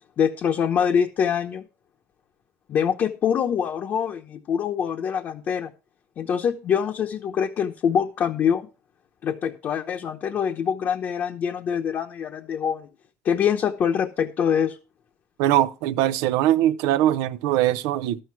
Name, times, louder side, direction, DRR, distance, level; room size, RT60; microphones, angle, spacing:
voice 1, 0.2-1.6 2.7-5.7 6.2-8.7 9.2-12.9 13.2-14.8, left 8 dB, 35° left, 0.9 m, -24 dB
voice 2, 15.4-18.2, right 13 dB, 80° right, 0.7 m, -21 dB
12.5 x 7.7 x 4.6 m
cardioid pair, 160°, 5 cm